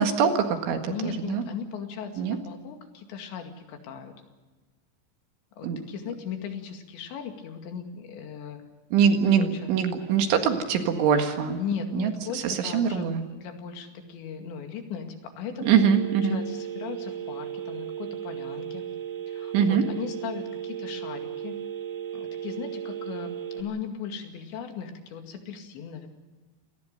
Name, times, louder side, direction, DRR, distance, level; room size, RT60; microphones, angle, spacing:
voice 1, 0.0-1.4 2.2-2.4 5.6-5.8 8.9-11.6 11.9-12.1 12.4-13.2 15.7-16.4 19.5-19.8, right 7 dB, 75° right, 6 dB, 4.1 m, -23 dB
voice 2, 0.9-4.1 5.6-8.6 9.4-9.7 11.3-18.8 19.3-21.6 22.1-26.1, left 7 dB, 70° left, 5 dB, 4.3 m, -37 dB
Telephone, 15.6-23.6, right 9 dB, 55° right, 3.6 m, -36 dB
27.5 x 18.5 x 6.7 m, 1.3 s
omnidirectional pair, 5.6 m